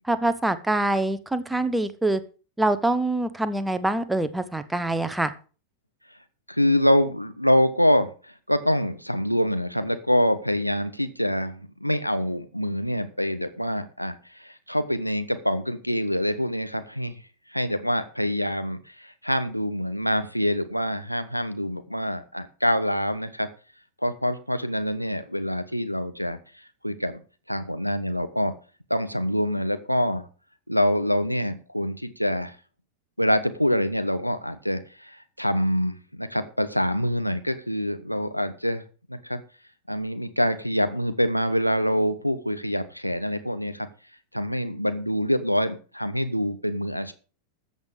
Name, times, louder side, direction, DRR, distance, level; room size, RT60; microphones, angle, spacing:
voice 1, 0.1-2.2 2.6-5.3, right 2 dB, 5° right, 12 dB, 1.1 m, -25 dB
voice 2, 6.5-17.1 17.5-23.5 24.0-26.4 26.8-27.2 27.5-28.5 28.9-30.3 30.7-32.6 33.2-38.8 39.1-39.4 39.9-43.9 44.3-47.1, equal, 90° left, 9 dB, 1.1 m, -25 dB
14.0 x 8.1 x 5.0 m, 0.37 s
figure-of-eight pair, 90°, 0 cm